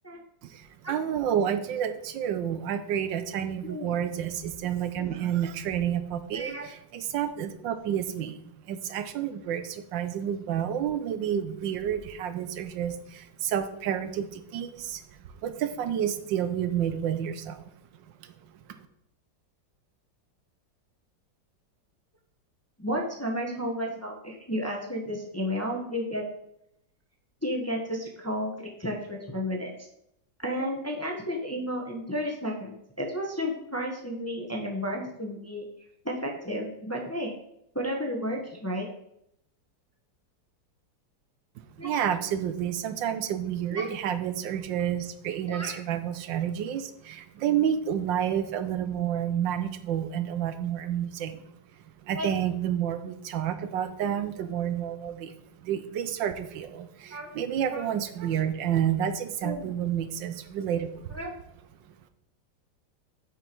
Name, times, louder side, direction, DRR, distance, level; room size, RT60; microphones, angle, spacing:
voice 1, 0.4-17.7 18.2-18.3 18.7-18.8 41.8-51.5 52.0-55.3 55.6-61.2, right 9 dB, 85° right, 10 dB, 1.5 m, -30 dB
voice 2, 6.3-6.7 22.8-26.2 27.4-29.9 30.4-35.6 36.0-37.3 37.7-38.9 41.8-42.0 43.7-43.9 45.5-45.8 52.1-52.3 57.1-57.3 57.7-57.9 59.4-59.7 61.1-61.3, equal, 10° left, 0 dB, 1.0 m, -32 dB
9.2 x 5.7 x 4.6 m, 0.77 s
omnidirectional pair, 2.0 m